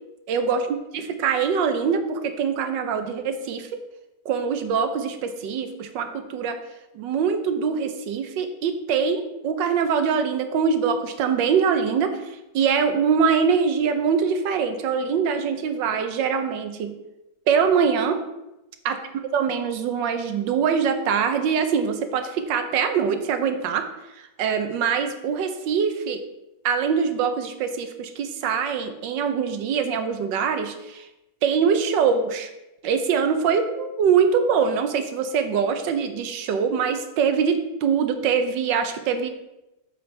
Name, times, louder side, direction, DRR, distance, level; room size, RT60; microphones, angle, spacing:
voice 1, 0.3-3.8 4.2-6.6 6.9-16.9 17.5-18.2 18.8-19.0 19.3-23.8 24.1-26.2 26.6-31.1 31.4-32.5 32.8-39.3, right 6 dB, 85° right, 8 dB, 1.5 m, -23 dB
9.1 x 7.2 x 3.3 m, 0.96 s
omnidirectional pair, 1.9 m